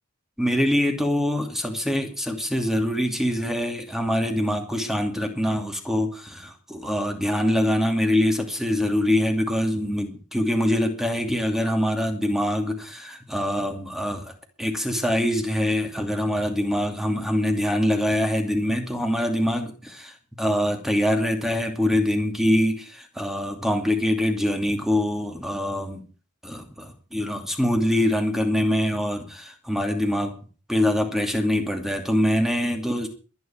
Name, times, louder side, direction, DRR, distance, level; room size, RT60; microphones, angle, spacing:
voice 1, 0.4-14.3 14.6-26.0 26.4-30.3 30.7-33.1, left 1 dB, ahead, 4 dB, 2.5 m, -24 dB
22.5 x 9.7 x 4.6 m, 0.38 s
head